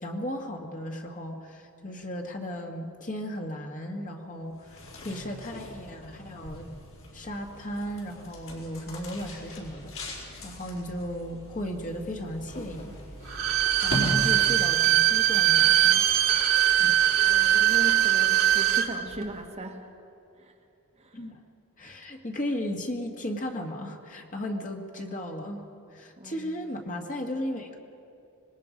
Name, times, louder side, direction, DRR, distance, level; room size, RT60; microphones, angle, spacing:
voice 1, 0.0-6.7 7.1-13.0 13.8-16.0 16.8-17.0 21.1-21.4 21.8-25.6 25.9-27.8, equal, 35° left, 2 dB, 1.9 m, -35 dB
sound 1, 4.5-14.9, equal, 60° left, 4.4 m, -39 dB
Bowed string instrument, 13.2-18.9 19.2-19.3, right 12 dB, 65° right, 1.7 m, -21 dB
voice 2, 17.2-19.9 20.4-20.5 21.0-21.3 26.2-26.6, right 1 dB, 30° right, 2 dB, 1.4 m, -38 dB
26.0 x 20.5 x 5.2 m, 2.6 s
head